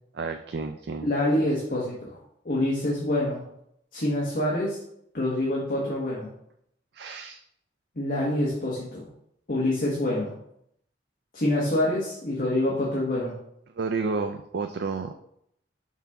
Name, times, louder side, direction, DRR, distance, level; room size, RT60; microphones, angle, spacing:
voice 1, 0.1-1.1 6.9-7.4 13.7-15.1, right 4 dB, 60° right, 6 dB, 0.4 m, -31 dB
voice 2, 1.0-2.2 2.4-3.4 3.9-4.8 5.1-6.3 8.0-9.1 9.5-10.3 11.3-13.3, left 1 dB, 50° left, -4 dB, 1.3 m, -26 dB
5.9 x 5.6 x 3.5 m, 0.74 s
head